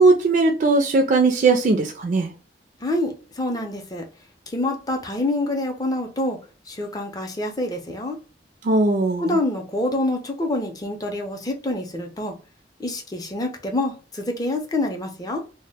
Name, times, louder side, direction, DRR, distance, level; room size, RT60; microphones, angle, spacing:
voice 1, 0.0-2.3 8.6-9.4, right 3 dB, 45° right, 0.4 m, -18 dB
voice 2, 2.8-4.1 4.5-6.4 6.7-8.2 9.2-12.3 12.8-15.4, left 1 dB, 20° left, 0.5 m, -26 dB
2.1 x 2.0 x 3.3 m
head